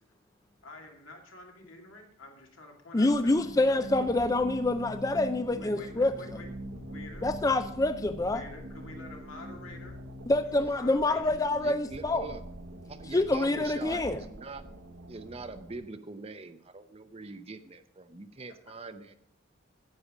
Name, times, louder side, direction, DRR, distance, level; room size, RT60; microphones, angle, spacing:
voice 1, 0.6-3.9 5.5-7.3 8.3-10.0 10.4-11.5, left 2 dB, 90° left, 1 dB, 2.5 m, -48 dB
voice 2, 2.9-6.1 7.2-8.4 10.3-12.3 13.1-14.2, left 2 dB, 15° left, 9 dB, 0.4 m, -26 dB
sound 1, 3.1-15.8, right 1 dB, 80° right, 1.3 m, -43 dB
voice 3, 11.6-12.4 12.9-14.6 15.1-19.2, right 3 dB, 30° right, 10 dB, 0.6 m, -43 dB
9.7 x 8.6 x 5.0 m, 0.70 s
head